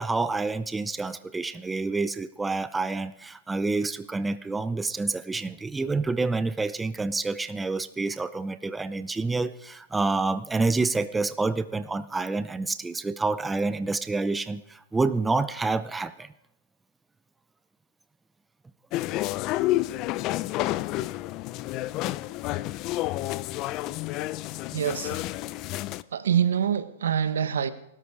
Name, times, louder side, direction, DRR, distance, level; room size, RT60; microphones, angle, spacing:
voice 1, 0.0-16.3, right 3 dB, 10° right, 13 dB, 0.6 m, -28 dB
sound 1, 18.9-26.0, left 16 dB, 40° left, 0.5 m, -30 dB
voice 2, 24.7-25.3 26.1-27.7, right 8 dB, 80° right, 13 dB, 1.2 m, -25 dB
19.5 x 13.0 x 4.9 m, 0.81 s
hypercardioid pair, 130°, 0 cm